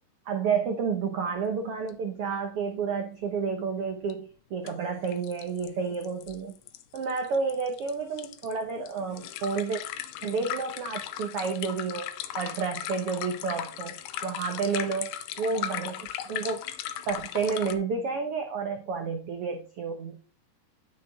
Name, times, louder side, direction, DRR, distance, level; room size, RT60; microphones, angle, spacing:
voice 1, 0.3-6.5 6.9-9.8 10.2-12.1 12.3-16.6 17.1-20.2, right 5 dB, 85° right, 4 dB, 1.2 m, -30 dB
sound 1, 1.9-2.0 2.2-2.3 4.1-4.2 4.7-4.8 5.0-17.7, left 11 dB, 80° left, 2.5 m, -37 dB
9.5 x 7.1 x 3.6 m, 0.37 s
omnidirectional pair, 4.3 m